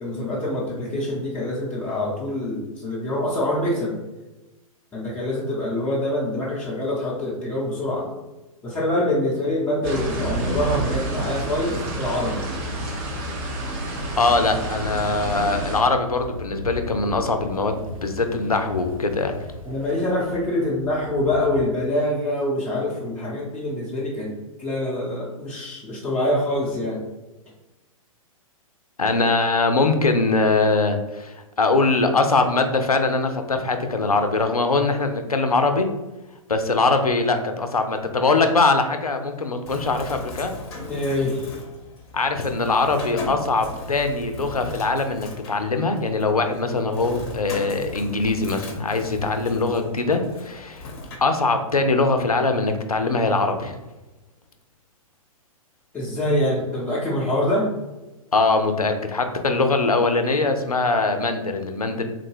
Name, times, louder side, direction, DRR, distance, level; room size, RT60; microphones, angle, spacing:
voice 1, 0.0-3.9 4.9-8.0 8.6-12.5 19.6-24.3 24.6-27.0 40.9-41.5 55.9-57.7, left 1 dB, 10° left, -9 dB, 0.6 m, -25 dB
sound 1, 9.8-15.8, right 2 dB, 30° right, 0.7 m, -29 dB
sound 2, 12.1-21.6, left 1 dB, 70° right, 0.6 m, -38 dB
voice 2, 14.2-19.4 29.0-35.9 36.5-40.5 42.1-50.9 51.2-53.8 58.3-62.0, left 3 dB, 85° left, 6 dB, 0.5 m, -22 dB
Bird, 39.7-51.2, left 2 dB, 45° left, 0.7 m, -38 dB
3.6 x 2.2 x 3.2 m, 1.1 s
figure-of-eight pair, 110°, 18 cm